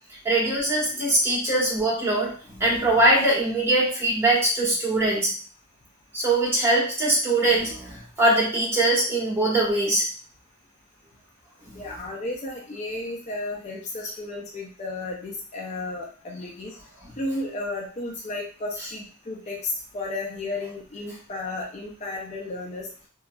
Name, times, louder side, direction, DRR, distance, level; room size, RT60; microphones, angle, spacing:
voice 1, 0.2-5.3 6.1-10.0 11.7-11.9, right 1 dB, 10° right, -7 dB, 1.2 m, -22 dB
voice 2, 11.7-16.8 17.2-22.9, left 2 dB, 30° left, -2 dB, 0.4 m, -33 dB
3.0 x 2.5 x 2.2 m, 0.41 s
head